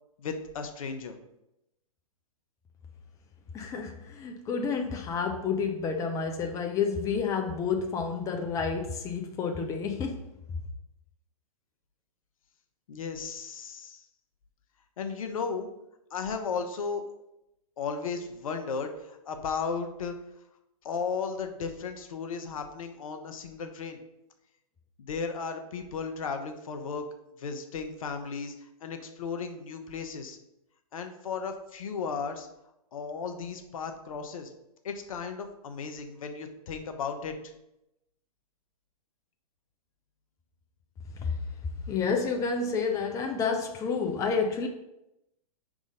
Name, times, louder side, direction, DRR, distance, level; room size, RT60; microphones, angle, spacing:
voice 1, 0.2-1.2 12.9-14.0 15.0-15.7 16.1-17.0 17.8-20.1 20.8-24.0 25.0-27.1 27.4-28.5 28.8-30.4 30.9-32.5 32.9-34.5 34.8-37.4, left 5 dB, 65° left, 6 dB, 0.8 m, -35 dB
voice 2, 3.5-10.2 41.2-41.3 41.9-44.7, left 5 dB, 15° left, 3 dB, 0.6 m, -30 dB
5.2 x 3.7 x 4.9 m, 0.88 s
figure-of-eight pair, 115°, 19 cm